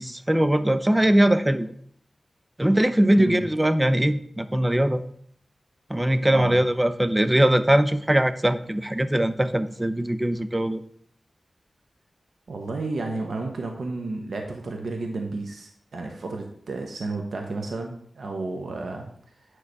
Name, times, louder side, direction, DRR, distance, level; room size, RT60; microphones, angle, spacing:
voice 1, 0.0-1.7 2.6-5.0 5.9-10.8, right 1 dB, 15° right, 12 dB, 0.7 m, -21 dB
voice 2, 3.0-3.5 6.3-6.6 12.5-19.1, right 3 dB, 80° right, 2 dB, 1.2 m, -32 dB
9.7 x 3.9 x 6.7 m, 0.63 s
cardioid pair, 60°, 0 cm